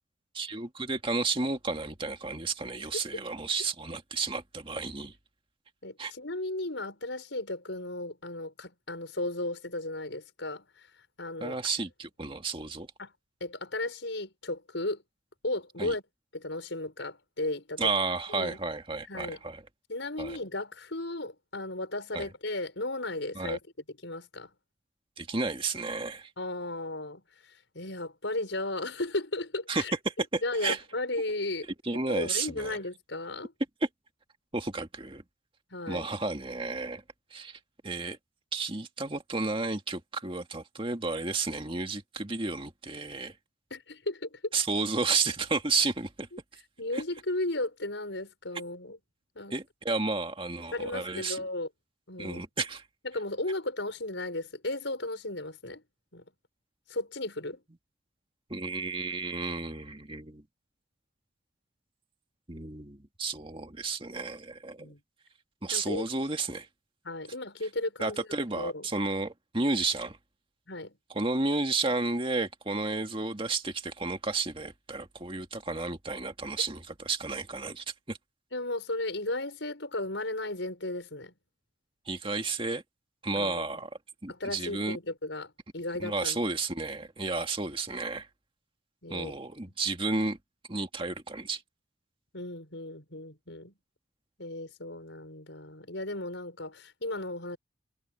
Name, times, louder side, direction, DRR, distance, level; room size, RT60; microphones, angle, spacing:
voice 1, 0.3-5.1 6.0-6.1 11.4-12.9 15.8-15.9 17.8-19.6 20.2-20.4 22.1-22.3 23.4-23.6 25.2-26.3 29.7-30.8 31.8-32.8 34.5-35.2 35.9-37.0 37.3-37.6 37.8-38.2 38.5-43.3 44.5-46.3 46.9-47.0 49.5-51.4 52.2-52.8 58.5-60.4 62.5-64.9 65.6-66.7 68.0-70.2 71.1-78.2 82.1-82.8 83.2-83.9 84.2-85.0 86.0-88.3 89.1-90.4 90.7-91.6, right 3 dB, 25° right, 2.0 m, -32 dB
voice 2, 5.8-10.9 11.2-11.6 13.0-13.1 13.4-15.0 15.4-16.0 16.3-17.9 18.3-18.6 19.1-19.4 19.9-23.6 24.0-24.5 26.4-27.2 27.7-29.9 30.4-31.7 32.1-33.5 35.7-36.1 43.7-44.4 46.3-46.4 46.8-49.0 49.4-49.6 50.7-51.7 52.1-52.4 53.0-55.8 56.1-56.2 56.9-57.6 64.8-65.0 65.7-66.0 67.0-68.3 68.5-68.8 70.7-71.0 78.5-81.3 83.3-83.6 84.3-86.4 89.0-89.3 92.3-93.7 94.4-97.6, left 2 dB, 70° left, 5.8 m, -35 dB
head